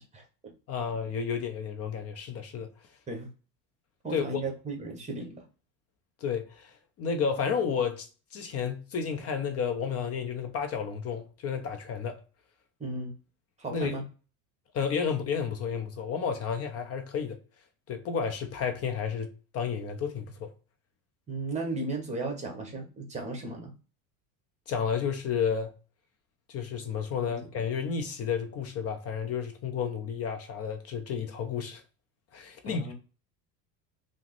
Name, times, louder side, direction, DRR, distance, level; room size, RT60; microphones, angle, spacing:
voice 1, 0.0-0.5 3.1-3.3 4.0-5.4 12.8-13.1 13.6-14.0 21.3-23.7 27.3-27.5 32.6-32.9, right 3 dB, 15° right, 1.0 m, -35 dB
voice 2, 0.7-2.7 4.1-4.4 6.2-6.7 7.0-12.2 13.7-13.9 14.7-17.4 17.9-20.5 24.7-25.7 26.5-31.8 32.3-32.9, left 6 dB, 35° left, 0.4 m, -31 dB
3.4 x 2.1 x 3.0 m
hypercardioid pair, 95°, 48 cm